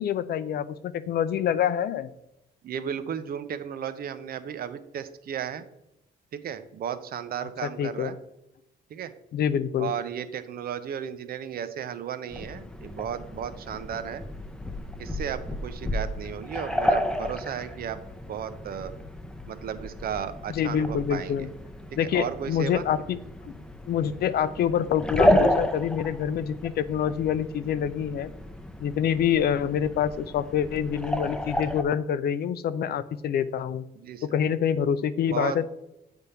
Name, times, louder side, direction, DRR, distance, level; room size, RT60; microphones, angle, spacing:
voice 1, 0.0-2.1 7.6-8.1 9.3-9.9 20.5-21.5 22.0-23.2 23.4-28.3 28.8-33.8 34.3-35.7, left 9 dB, 65° left, 14 dB, 0.5 m, -26 dB
voice 2, 2.6-5.6 6.3-8.2 8.9-9.1 9.8-14.2 15.0-18.0 18.3-18.9 19.5-21.5 21.9-22.8 34.0-34.3 35.3-35.7, right 8 dB, 60° right, 11 dB, 0.7 m, -34 dB
sound 1, 12.3-31.8, equal, 5° left, 0.7 m, -31 dB
8.1 x 3.5 x 5.6 m, 0.85 s
cardioid pair, 110°, 18 cm